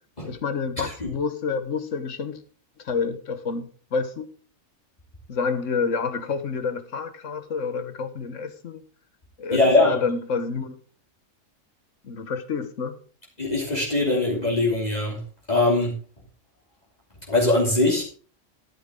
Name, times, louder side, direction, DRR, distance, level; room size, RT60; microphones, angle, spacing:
voice 1, 0.2-2.4 2.8-4.3 5.3-8.8 9.4-10.8 12.0-13.0, left 5 dB, 65° left, 10 dB, 1.5 m, -28 dB
voice 2, 9.5-9.9 13.4-15.2 15.5-16.0 17.3-18.0, left 2 dB, 30° left, -4 dB, 3.1 m, -21 dB
13.0 x 9.5 x 3.7 m, 0.41 s
omnidirectional pair, 1.4 m